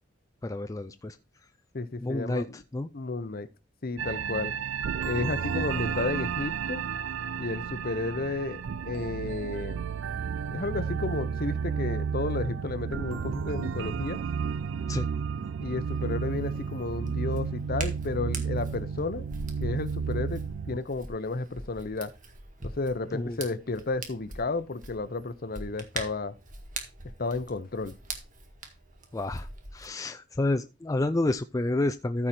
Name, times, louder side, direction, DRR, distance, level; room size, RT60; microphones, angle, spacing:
voice 1, 0.4-1.2 2.0-2.9 14.9-15.1 23.1-23.4 29.1-32.3, left 2 dB, 20° left, 0.4 m, -29 dB
voice 2, 1.7-2.6 2.9-3.5 3.8-4.5 5.0-6.8 7.4-9.8 10.5-14.2 15.6-19.2 19.6-22.1 22.6-26.3 27.2-27.9, left 3 dB, 50° left, 0.8 m, -32 dB
sound 1, 4.0-20.8, right 6 dB, 80° right, 0.4 m, -32 dB
Hands, 15.9-29.9, right 3 dB, 45° right, 1.8 m, -43 dB
14.0 x 4.8 x 4.3 m
head